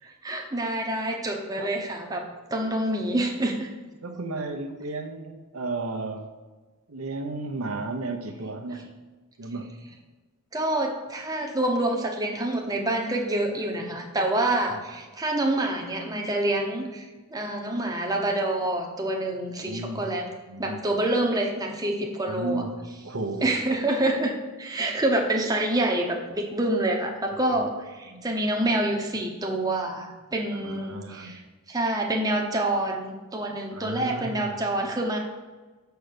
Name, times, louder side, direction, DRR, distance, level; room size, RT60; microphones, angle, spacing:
voice 1, 0.2-2.2 2.5-3.7 10.5-20.3 20.6-22.6 23.4-31.4 31.7-35.2, right 1 dB, 15° right, 1 dB, 0.9 m, -27 dB
voice 2, 4.0-6.3 6.9-8.9 9.4-9.7 19.6-20.1 20.5-20.8 22.3-22.7 23.0-23.5 28.1-28.2 30.6-31.3 33.7-34.6, right 3 dB, 80° right, 4 dB, 0.9 m, -33 dB
6.6 x 4.6 x 6.7 m, 1.3 s
head